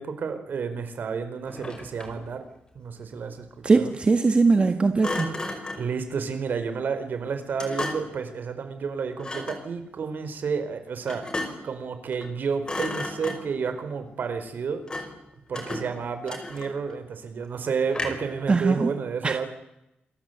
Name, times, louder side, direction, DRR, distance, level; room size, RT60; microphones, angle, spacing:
voice 1, 0.0-2.4 2.7-3.5 3.7-3.9 5.7-11.2 11.6-14.8 15.5-19.4, right 5 dB, 65° right, 9 dB, 4.9 m, -31 dB
Thump thud, 1.4-2.3 5.0-5.9 7.6-8.2 9.2-9.7 11.1-11.7 12.1-12.4 12.6-13.6 14.9-15.2 15.5-16.9 17.9-18.4, left 2 dB, 25° left, 5.4 m, -34 dB
voice 2, 3.6-5.3 18.5-18.9 19.2-19.4, right 4 dB, 35° right, 7 dB, 1.6 m, -20 dB
28.5 x 22.5 x 8.3 m, 0.86 s
wide cardioid pair, 125°, 3 cm